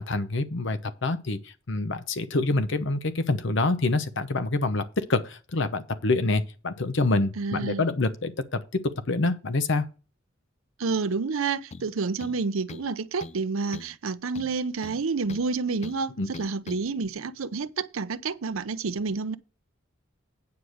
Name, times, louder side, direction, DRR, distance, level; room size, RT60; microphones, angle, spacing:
voice 1, 0.0-9.9 16.2-16.3, left 2 dB, 60° left, 0.9 m, -26 dB
voice 2, 7.4-7.9 10.8-19.4, right 4 dB, 90° right, 0.6 m, -29 dB
sound 1, 11.7-11.9 12.2-12.9 13.2-13.4 13.7-14.0 14.3-15.5 15.8-16.0 16.3-16.8, left 3 dB, 35° left, 0.4 m, -42 dB
9.5 x 4.8 x 6.4 m
head